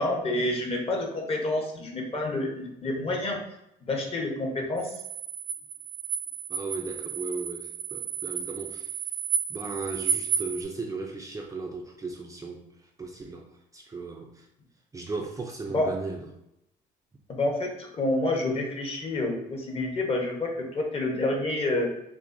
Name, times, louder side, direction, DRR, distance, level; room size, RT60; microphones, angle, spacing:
voice 1, 0.0-3.4 3.8-4.9 15.7-15.9 17.3-21.9, left 2 dB, 35° left, 1 dB, 1.0 m, -28 dB
sound 1, 4.8-10.6, right 7 dB, 75° right, 0.7 m, -32 dB
voice 2, 6.5-8.9 9.5-12.6 13.0-13.4 13.7-14.5 14.9-16.2, right 3 dB, 20° right, 0 dB, 0.4 m, -36 dB
5.8 x 2.1 x 2.6 m, 0.82 s
cardioid pair, 110°, 17 cm